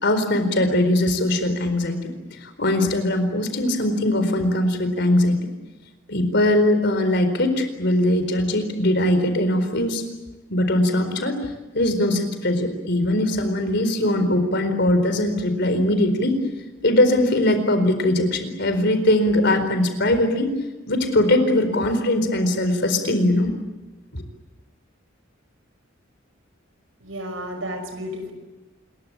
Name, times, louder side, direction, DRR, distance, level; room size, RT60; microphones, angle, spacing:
voice 1, 0.0-5.4 6.1-10.0 10.5-11.4 11.7-16.4 16.8-20.6 20.9-23.5 24.1-24.2, left 1 dB, 60° left, 9 dB, 4.4 m, -21 dB
voice 2, 27.0-28.3, equal, 75° right, 8 dB, 5.7 m, -32 dB
27.5 x 22.5 x 8.8 m, 1.1 s
head